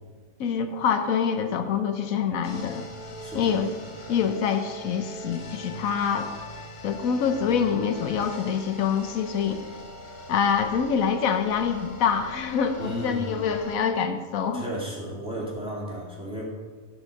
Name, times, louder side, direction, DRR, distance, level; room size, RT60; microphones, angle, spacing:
voice 1, 0.4-2.9 3.3-3.7 4.1-6.3 6.8-9.6 10.3-14.6, left 7 dB, 85° left, 7 dB, 1.2 m, -25 dB
sound 1, 2.4-13.7, equal, 35° left, 1.1 m, -41 dB
voice 2, 3.2-3.5 12.8-13.4 14.5-16.4, right 1 dB, 5° right, -5 dB, 2.4 m, -34 dB
12.0 x 5.0 x 6.5 m, 1.5 s
omnidirectional pair, 1.4 m